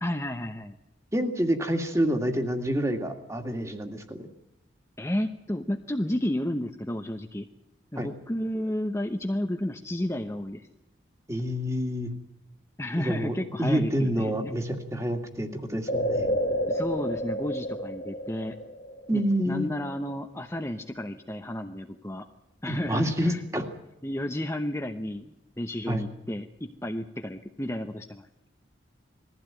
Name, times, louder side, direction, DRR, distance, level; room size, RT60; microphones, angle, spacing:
voice 1, 0.0-0.8 5.0-7.5 7.9-10.7 12.8-14.5 16.7-18.6 19.1-22.3 22.6-23.4 24.0-28.3, left 1 dB, 15° left, 5 dB, 0.8 m, -32 dB
voice 2, 1.1-4.3 8.0-8.1 11.3-12.1 13.0-13.3 13.6-16.3 19.1-19.7 22.7-23.6 25.9-26.0, equal, 15° right, 5 dB, 2.1 m, -28 dB
sound 1, 15.9-19.6 19.9-20.0, equal, 45° left, 1.3 m, -30 dB
21.0 x 15.5 x 9.0 m, 0.92 s
head